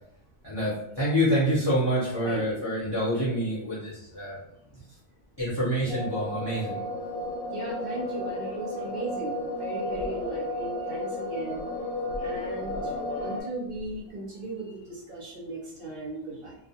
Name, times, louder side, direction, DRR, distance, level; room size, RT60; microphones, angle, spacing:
voice 1, 0.4-4.4 5.4-6.8 13.2-13.3, equal, 20° left, -11 dB, 0.7 m, -27 dB
voice 2, 2.2-2.7 7.5-11.6 12.2-12.9 13.2-16.5, right 2 dB, 55° right, -3 dB, 0.6 m, -37 dB
sound 1, 5.9-13.4, left 1 dB, 70° left, 0.9 m, -33 dB
2.4 x 2.1 x 2.8 m, 0.76 s
omnidirectional pair, 1.5 m